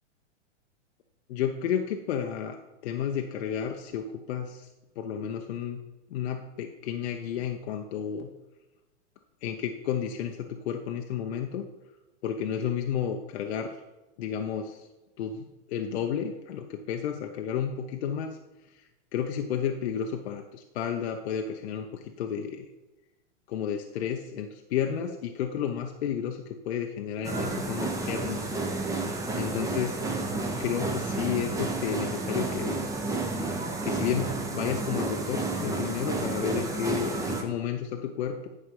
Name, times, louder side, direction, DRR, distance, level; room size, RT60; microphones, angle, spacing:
voice 1, 1.3-4.7 5.0-5.8 6.1-8.3 9.4-11.7 12.2-13.7 14.2-14.8 15.2-18.4 18.7-18.8 19.1-22.7 23.5-28.6 29.0-30.0 30.6-32.8 33.8-38.5, left 8 dB, 65° left, 4 dB, 0.9 m, -32 dB
sound 1, 27.2-37.4, right 3 dB, 10° right, 0.9 m, -31 dB
10.0 x 4.3 x 5.3 m, 1.1 s
hypercardioid pair, 130°, 36 cm